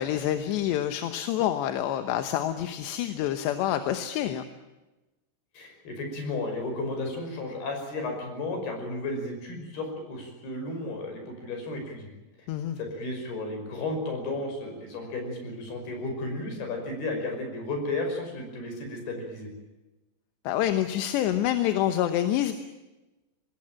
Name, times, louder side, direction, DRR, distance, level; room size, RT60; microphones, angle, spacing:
voice 1, 0.0-4.4 12.5-12.8 20.4-22.5, left 11 dB, 75° left, 8 dB, 3.1 m, -27 dB
voice 2, 5.6-12.1 12.8-19.5, left 2 dB, 55° left, 4 dB, 7.4 m, -33 dB
25.5 x 19.5 x 8.9 m, 1.1 s
omnidirectional pair, 5.4 m